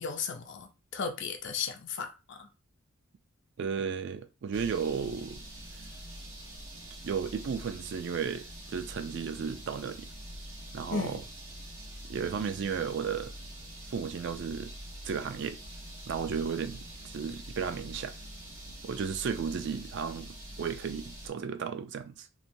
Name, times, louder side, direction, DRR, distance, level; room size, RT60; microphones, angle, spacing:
voice 1, 0.0-2.5 10.9-11.2, left 5 dB, 60° left, 0.5 m, -35 dB
voice 2, 3.6-5.4 7.0-10.1 10.7-11.2 12.1-13.3 13.9-14.7 15.0-15.6 16.1-18.1 18.8-22.3, right 6 dB, 60° right, 0.3 m, -34 dB
sound 1, 4.5-21.3, right 1 dB, 75° right, 1.2 m, -45 dB
2.9 x 2.2 x 2.6 m
head